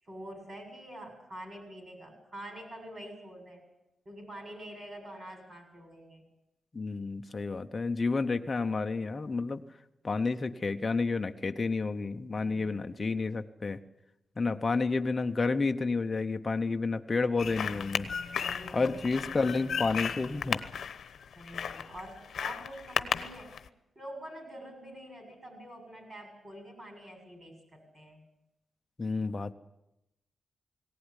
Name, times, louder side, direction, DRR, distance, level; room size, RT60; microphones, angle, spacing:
voice 1, 0.0-3.6 4.1-6.2 12.4-12.9 18.4-19.0 21.3-23.6 24.0-28.2, right 1 dB, 35° right, 3 dB, 7.3 m, -46 dB
voice 2, 6.7-9.6 10.0-13.8 14.4-18.1 18.7-20.6 29.0-29.5, left 3 dB, 25° left, 6 dB, 0.9 m, -30 dB
sound 1, 17.4-23.7, left 7 dB, 70° left, 1.0 m, -35 dB
19.0 x 18.0 x 9.9 m, 0.91 s
wide cardioid pair, 150°, 0 cm